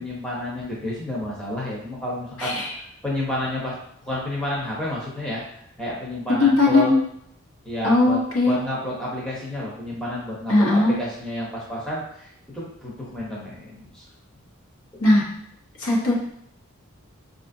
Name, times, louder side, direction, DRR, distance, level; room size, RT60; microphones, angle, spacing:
voice 1, 0.0-3.8 4.0-5.4 5.8-6.9 7.6-8.2 8.5-12.3 12.5-14.0, left 1 dB, 5° left, -6 dB, 0.7 m, -30 dB
voice 2, 2.4-2.7 6.4-7.0 7.8-8.6 10.5-11.0 15.0-15.3 15.8-16.1, left 2 dB, 70° left, -4 dB, 0.9 m, -18 dB
4.6 x 2.4 x 2.6 m, 0.71 s
head